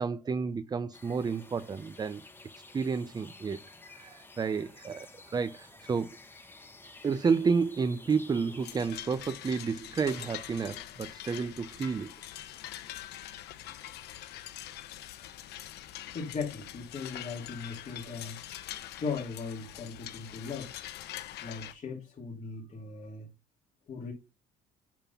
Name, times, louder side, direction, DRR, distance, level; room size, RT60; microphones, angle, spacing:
voice 1, 0.0-2.2 2.7-3.6 3.9-6.2 7.0-12.1, right 5 dB, 25° right, 0.6 m, -31 dB
sound 1, 0.9-8.9, left 2 dB, 15° left, 1.6 m, -52 dB
sound 2, 8.6-21.7, left 13 dB, 80° left, 1.0 m, -44 dB
voice 2, 15.0-15.3 15.7-18.7 18.9-20.8 21.4-23.3 23.9-24.1, left 5 dB, 45° left, 2.9 m, -39 dB
9.0 x 3.7 x 5.7 m
cardioid pair, 110°, 17 cm